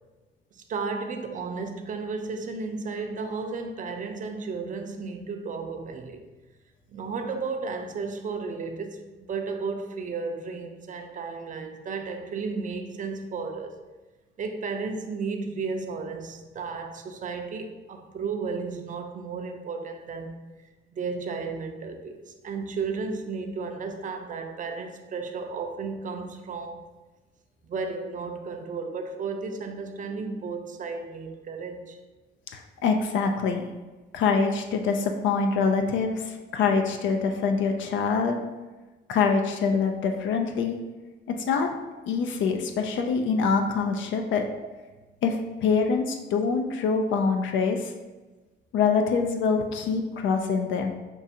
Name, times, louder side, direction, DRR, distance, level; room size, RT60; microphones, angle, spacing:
voice 1, 0.5-6.2 6.9-13.7 14.4-20.4 20.9-26.8 27.6-32.0, right 4 dB, 40° right, 5 dB, 0.5 m, -33 dB
voice 2, 32.5-33.6 34.1-38.4 39.1-40.8 41.3-41.7 42.0-44.4 45.2-47.9 48.7-50.9, left 5 dB, 75° left, 4 dB, 0.4 m, -25 dB
5.3 x 2.4 x 2.7 m, 1.2 s
cardioid pair, 90°, 20 cm